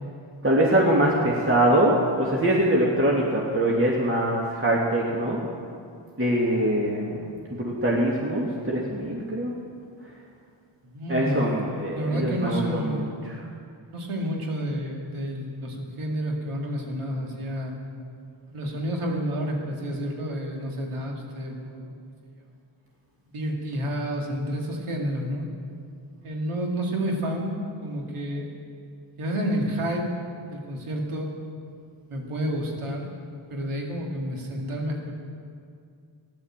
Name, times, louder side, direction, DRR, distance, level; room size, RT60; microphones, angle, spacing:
voice 1, 0.4-5.4 6.2-7.2 7.5-9.5 11.1-13.3, right 1 dB, 25° right, -3 dB, 2.5 m, -23 dB
voice 2, 10.8-11.6 11.8-13.1 13.9-17.8 18.5-21.9 23.3-25.5 26.2-27.5 27.8-28.5 29.2-30.1 30.5-31.3 32.1-33.1 33.5-35.1, equal, 85° right, 0 dB, 2.3 m, -30 dB
14.5 x 11.0 x 7.5 m, 2.3 s
cardioid pair, 50°, 50 cm